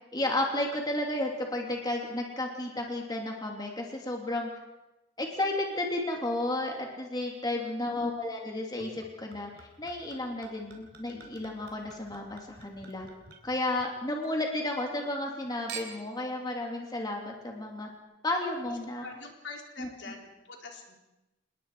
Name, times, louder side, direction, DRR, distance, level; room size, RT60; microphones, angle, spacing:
voice 1, 0.1-4.5 5.2-13.1 13.4-17.9 18.2-19.0 19.8-19.9, left 1 dB, 20° left, 1 dB, 2.7 m, -32 dB
voice 2, 7.5-8.1 18.7-20.9, left 3 dB, 70° left, 1 dB, 3.8 m, -46 dB
Chink clink / Liquid, 8.8-14.3 14.6-15.3 15.7-16.2 16.9-17.0, right 6 dB, 60° right, 3.7 m, -48 dB
27.5 x 20.5 x 4.8 m, 1.0 s
head